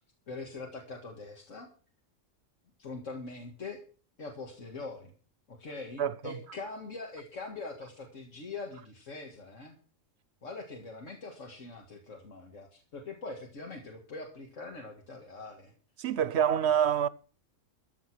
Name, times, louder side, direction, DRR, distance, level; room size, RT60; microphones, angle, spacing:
voice 1, 0.3-1.7 2.8-3.8 4.2-5.1 5.5-9.8 10.4-15.7, left 3 dB, 80° left, 2.3 m, -43 dB
voice 2, 6.0-6.3 16.0-17.1, right 9 dB, 65° right, 1.0 m, -26 dB
14.5 x 9.3 x 6.2 m
omnidirectional pair, 1.3 m